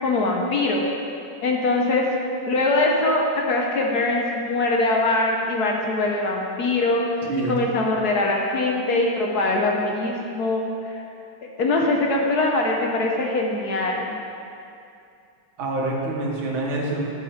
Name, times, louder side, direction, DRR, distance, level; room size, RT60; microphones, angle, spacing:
voice 1, 0.0-0.8 1.4-2.1 2.5-7.0 7.5-11.0 11.4-14.1, left 2 dB, 60° left, 0 dB, 1.2 m, -22 dB
voice 2, 15.6-17.1, right 2 dB, 85° right, -2 dB, 2.1 m, -26 dB
11.0 x 6.6 x 4.3 m, 2.6 s
omnidirectional pair, 2.2 m